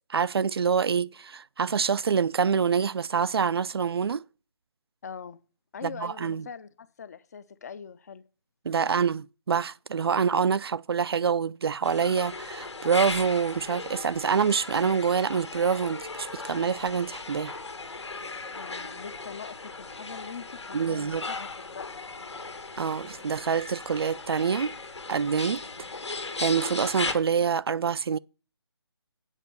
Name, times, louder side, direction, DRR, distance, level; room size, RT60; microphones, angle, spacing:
voice 1, 0.1-4.2 5.8-6.5 8.6-17.6 20.7-21.2 22.8-24.7 25.1-25.6 26.4-28.2, right 6 dB, 60° right, 0.4 m, -26 dB
voice 2, 5.0-5.4 5.7-8.2 8.8-9.0 18.5-22.5 25.7-25.8, left 6 dB, 35° left, 0.6 m, -43 dB
sound 1, 11.8-27.1, left 3 dB, 85° left, 1.8 m, -37 dB
8.2 x 5.4 x 6.8 m
figure-of-eight pair, 160°, 14 cm